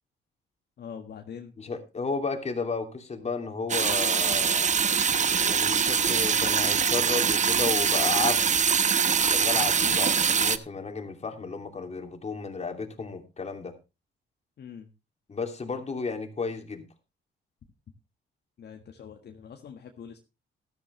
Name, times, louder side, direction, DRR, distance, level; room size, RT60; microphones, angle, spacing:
voice 1, 0.8-1.5 14.6-14.9 18.6-20.2, left 7 dB, 55° left, 3 dB, 1.7 m, -43 dB
voice 2, 1.6-4.7 5.3-8.5 9.2-13.7 15.3-16.8, left 4 dB, 35° left, 5 dB, 2.8 m, -33 dB
sound 1, 3.7-10.6, right 6 dB, 40° right, 0.9 m, -23 dB
13.5 x 12.5 x 3.3 m, 0.27 s
cardioid pair, 90°, 20 cm